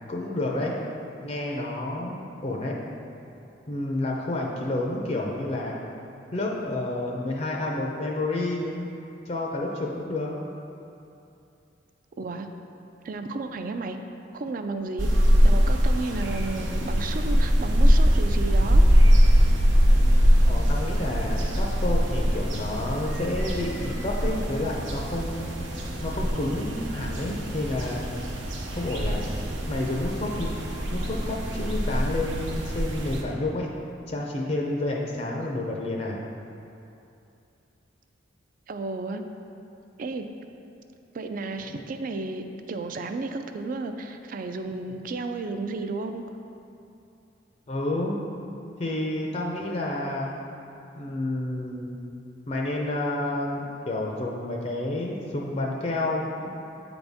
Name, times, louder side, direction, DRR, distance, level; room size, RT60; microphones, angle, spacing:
voice 1, 0.1-0.8 1.2-2.8 3.7-5.8 6.3-8.8 9.3-10.3 20.4-25.6 26.0-28.1 28.7-29.3 29.7-30.5 30.9-33.7 34.1-36.2 47.7-48.2 48.8-50.3 50.9-52.0 52.5-56.5, left 2 dB, 35° left, -1 dB, 0.5 m, -30 dB
voice 2, 12.2-12.5 13.0-14.0 14.3-15.1 15.4-18.8 38.7-39.2 40.0-40.2 41.1-46.2, right 3 dB, 45° right, 7 dB, 0.3 m, -33 dB
sound 1, 15.0-33.2, equal, 80° right, 0.8 m, -22 dB
8.6 x 4.0 x 3.5 m, 2.7 s
head